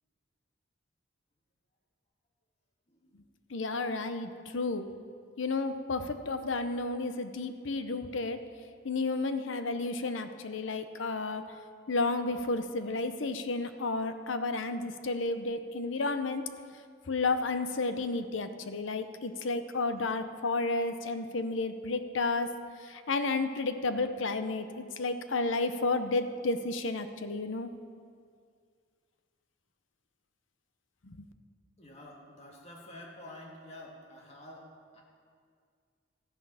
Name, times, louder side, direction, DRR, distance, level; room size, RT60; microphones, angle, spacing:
voice 1, 3.5-4.9 5.4-8.4 8.8-11.4 11.9-16.4 17.1-22.5 22.9-27.7 31.1-31.2, left 3 dB, 75° left, 9 dB, 0.8 m, -32 dB
voice 2, 31.8-35.0, left 1 dB, 35° left, -1 dB, 2.0 m, -49 dB
13.5 x 9.4 x 5.7 m, 2.1 s
head